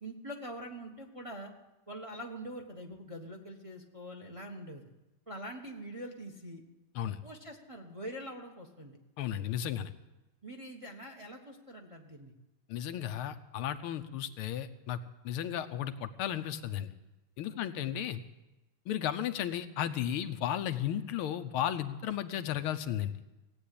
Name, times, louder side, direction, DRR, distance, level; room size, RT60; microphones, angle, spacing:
voice 1, 0.0-1.5 1.9-4.8 5.3-6.6 7.2-9.0 10.4-12.3 17.7-17.9, right 1 dB, 20° right, 3 dB, 1.1 m, -44 dB
voice 2, 9.2-9.9 12.7-15.0 15.2-16.9 17.4-18.2 18.9-23.1, left 10 dB, 85° left, 10 dB, 1.7 m, -34 dB
17.0 x 8.9 x 8.5 m, 1.0 s
omnidirectional pair, 2.3 m